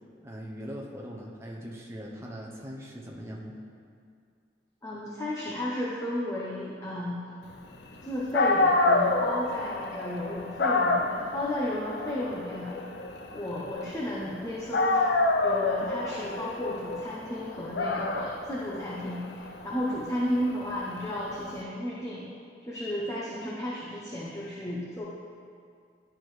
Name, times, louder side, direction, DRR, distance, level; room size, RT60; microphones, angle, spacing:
voice 1, 0.2-3.6, equal, 15° right, -2 dB, 0.7 m, -40 dB
voice 2, 4.8-7.2 8.0-12.8 13.3-15.0 15.4-22.3 22.6-25.0, left 1 dB, 15° left, -5 dB, 0.6 m, -33 dB
Dog, 8.0-8.1 8.3-14.4 14.7-21.5, left 2 dB, 70° left, 0.5 m, -28 dB
10.5 x 4.6 x 3.2 m, 2.3 s
head